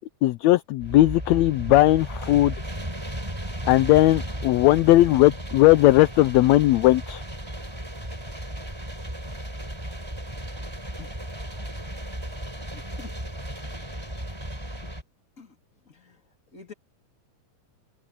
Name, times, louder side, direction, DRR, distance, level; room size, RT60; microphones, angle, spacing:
voice 1, 0.2-2.5 3.7-7.2, left 16 dB, 75° left, 1.7 m, -18 dB
sound 1, 0.8-15.0, right 1 dB, 10° right, 5.0 m, -35 dB
voice 2, 12.7-13.1 14.8-14.9 15.4-15.5 15.9-16.2 16.5-16.7, left 5 dB, 25° left, 3.1 m, -46 dB
omnidirectional pair, 3.6 m